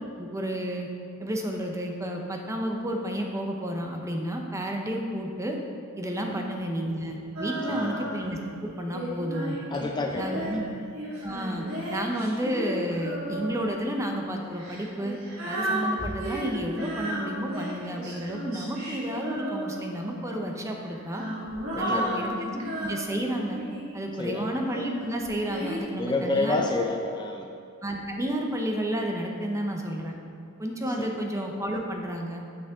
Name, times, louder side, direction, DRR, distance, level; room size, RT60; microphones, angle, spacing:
voice 1, 0.2-0.9 1.2-5.6 6.0-9.6 10.1-10.6 11.2-15.2 15.5-21.2 21.8-23.6 23.9-26.6 27.8-30.2 30.6-32.4, equal, 15° right, 2 dB, 0.7 m, -31 dB
Female singing, 7.4-8.4 8.9-13.8 14.5-20.1 20.9-24.0 24.7-25.8, equal, 75° right, 1.9 m, -34 dB
voice 2, 7.7-8.0 9.7-10.6 21.7-22.2 24.2-24.5 25.9-27.5 31.0-31.1, left 2 dB, 20° left, 2 dB, 0.4 m, -29 dB
9.2 x 6.0 x 3.6 m, 2.5 s
head